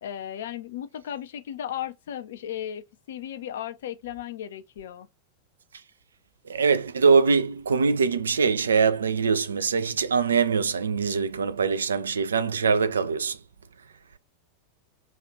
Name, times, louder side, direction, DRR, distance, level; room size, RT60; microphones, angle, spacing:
voice 1, 0.0-5.1, left 10 dB, 60° left, 0.5 m, -35 dB
voice 2, 6.5-13.4, right 5 dB, 70° right, 0.3 m, -23 dB
3.0 x 2.4 x 2.9 m
figure-of-eight pair, 90°, 0 cm